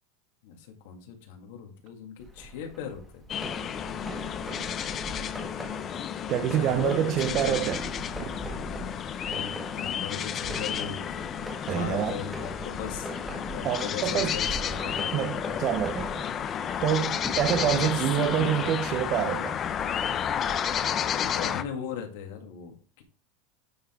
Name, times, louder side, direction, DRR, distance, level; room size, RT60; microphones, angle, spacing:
voice 1, 0.4-3.3 6.5-7.6 9.2-11.3 11.7-13.1 13.5-15.4 17.6-18.8 21.1-23.0, left 7 dB, 70° left, 2.0 m, -38 dB
sound 1, 2.2-20.8, right 1 dB, 5° right, 1.3 m, -42 dB
sound 2, 3.3-21.6, left 8 dB, 25° left, 0.4 m, -32 dB
voice 2, 6.3-7.8 8.3-8.4 11.7-12.2 13.6-14.4 15.1-16.3 16.8-19.6, right 10 dB, 35° right, 0.5 m, -27 dB
9.2 x 3.9 x 4.5 m
supercardioid pair, 165°, 0 cm